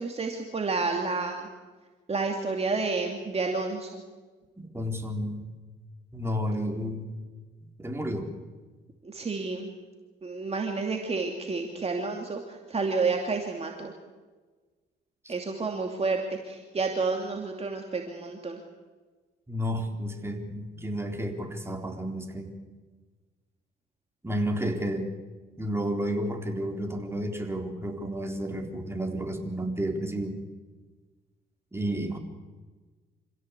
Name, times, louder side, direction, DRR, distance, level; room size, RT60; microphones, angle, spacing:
voice 1, 0.0-1.5 2.1-4.0 9.0-9.7 10.2-13.9 15.3-18.6, right 4 dB, 30° right, 2 dB, 2.6 m, -30 dB
voice 2, 4.6-5.5 6.1-7.2 7.6-8.3 15.2-15.3 19.5-22.5 24.2-25.1 25.6-30.4 31.7-32.2, equal, 10° right, 2 dB, 4.0 m, -31 dB
26.5 x 16.5 x 8.3 m, 1.4 s
cardioid pair, 90°, 20 cm